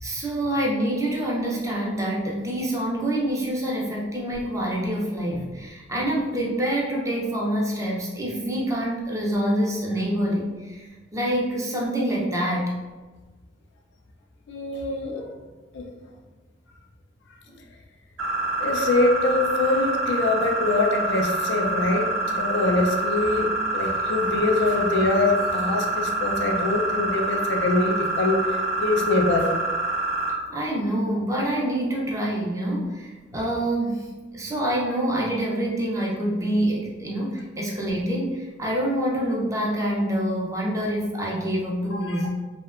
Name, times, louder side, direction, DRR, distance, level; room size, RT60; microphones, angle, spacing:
voice 1, 0.0-10.8 11.1-12.7 17.5-17.6 30.5-34.1 34.3-42.3, right 1 dB, 15° right, -3 dB, 0.5 m, -26 dB
voice 2, 14.5-15.3 15.7-15.8 18.6-29.5 41.9-42.2, left 2 dB, 65° left, 2 dB, 0.4 m, -24 dB
sound 1, 18.2-30.3, right 2 dB, 85° right, 0.5 m, -26 dB
2.7 x 2.1 x 2.4 m, 1.3 s
head